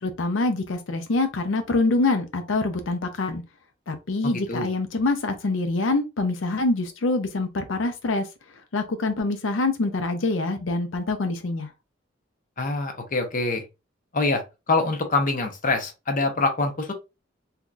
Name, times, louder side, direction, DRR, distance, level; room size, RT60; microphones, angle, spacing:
voice 1, 0.0-3.4 3.9-8.3 8.7-11.7, left 2 dB, 85° left, 0.6 m, -25 dB
voice 2, 4.2-4.7 12.6-13.6 14.1-14.4 14.7-16.9, left 3 dB, 45° left, 0.8 m, -25 dB
3.7 x 2.8 x 2.4 m
head